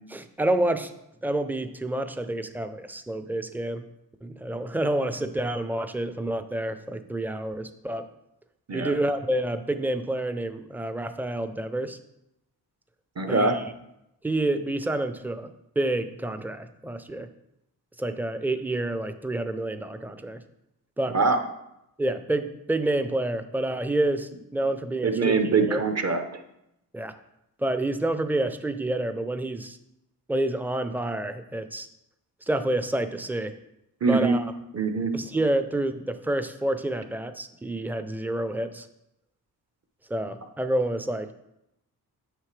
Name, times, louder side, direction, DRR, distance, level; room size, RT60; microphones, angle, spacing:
voice 1, 0.1-0.9 1.2-3.9 4.2-8.1 8.7-12.0 13.3-13.6 14.2-17.3 18.0-20.4 21.0-21.2 22.0-25.8 26.9-27.1 27.6-29.8 30.3-31.9 32.5-33.5 34.1-34.5 35.1-38.9 40.1-41.3, right 1 dB, 5° right, 10 dB, 0.5 m, -28 dB
voice 2, 13.2-13.6 21.1-21.4 25.0-26.2 34.0-34.4 34.7-35.1, right 4 dB, 40° right, 6 dB, 0.9 m, -23 dB
9.2 x 6.5 x 3.3 m, 0.84 s
cardioid pair, 85°, 39 cm